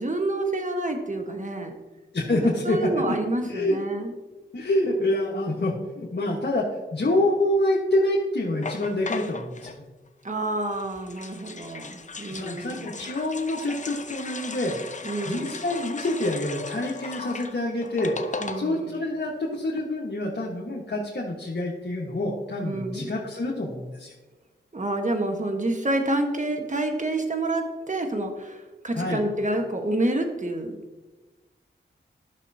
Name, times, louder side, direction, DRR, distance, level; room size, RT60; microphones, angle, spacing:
voice 1, 0.0-1.7 2.3-4.1 10.2-13.0 15.0-15.5 18.4-18.9 22.6-23.2 24.7-30.8, right 1 dB, 40° right, 4 dB, 1.3 m, -28 dB
voice 2, 2.1-3.2 3.4-3.8 4.5-6.6 6.9-9.7 12.3-15.0 15.2-24.1 28.9-29.2, left 1 dB, 55° left, -4 dB, 1.3 m, -27 dB
sound 1, 8.6-9.8 10.6-19.0 19.3-19.4 19.5-19.8, left 4 dB, 40° left, 0.6 m, -37 dB
12.0 x 6.4 x 2.8 m, 1.2 s
cardioid pair, 45°, 20 cm